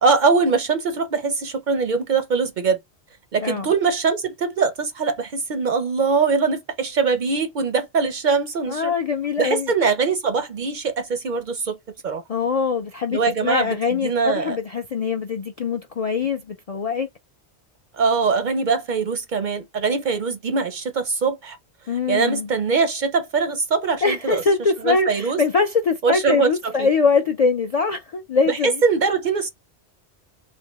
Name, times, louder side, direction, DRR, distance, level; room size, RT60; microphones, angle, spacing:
voice 1, 0.0-2.8 3.3-8.9 9.4-11.8 12.0-12.2 13.1-14.6 17.9-21.6 22.1-24.4 24.8-25.4 26.0-26.9 28.5-29.5, right 5 dB, 55° right, 0.6 m, -22 dB
voice 2, 8.7-9.7 12.3-17.1 21.9-22.5 24.0-28.8, left 4 dB, 55° left, 0.4 m, -23 dB
3.4 x 2.7 x 2.9 m
omnidirectional pair, 1.1 m